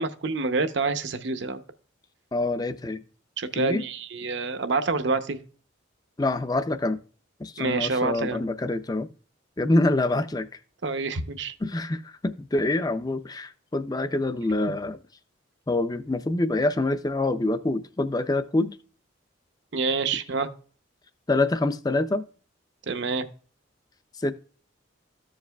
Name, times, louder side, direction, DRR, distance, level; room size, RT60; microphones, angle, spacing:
voice 1, 0.0-1.6 3.4-5.4 7.6-8.4 10.8-11.5 19.7-20.5 22.9-23.3, right 4 dB, 60° right, 0.7 m, -27 dB
voice 2, 2.3-3.0 3.6-3.9 6.2-7.0 7.4-9.1 9.6-10.5 11.6-15.0 15.7-18.8 21.3-22.2 24.2-24.3, left 2 dB, 20° left, 0.4 m, -26 dB
14.5 x 4.8 x 2.2 m
head